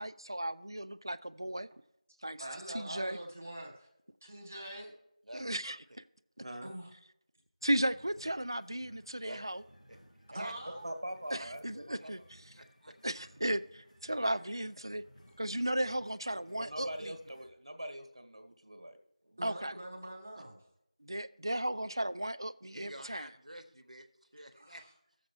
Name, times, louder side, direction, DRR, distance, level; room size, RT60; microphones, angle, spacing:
voice 1, 0.0-1.7 2.2-2.4 2.7-3.2 5.3-5.8 7.6-9.6 11.3-12.2 13.0-15.0 15.4-17.1 19.4-19.7 21.0-23.3, right 1 dB, 40° right, 0.3 m, -35 dB
voice 2, 2.4-3.9 4.2-4.9 6.6-6.9 10.3-10.9 19.4-20.6 24.5-24.8, right 1 dB, 20° right, 0.9 m, -44 dB
voice 3, 5.2-6.0 9.2-9.5 9.9-10.0 10.3-10.6 11.4-11.5 12.0-12.1 12.5-13.3 22.6-25.2, right 1 dB, 75° right, 1.2 m, -50 dB
voice 4, 6.4-6.7 10.8-12.1 16.5-19.0 19.2-19.5, right 1 dB, 55° right, 1.5 m, -43 dB
sound 1, 7.6-17.5, equal, 90° left, 1.3 m, -61 dB
15.0 x 7.1 x 3.1 m
figure-of-eight pair, 180°, 4 cm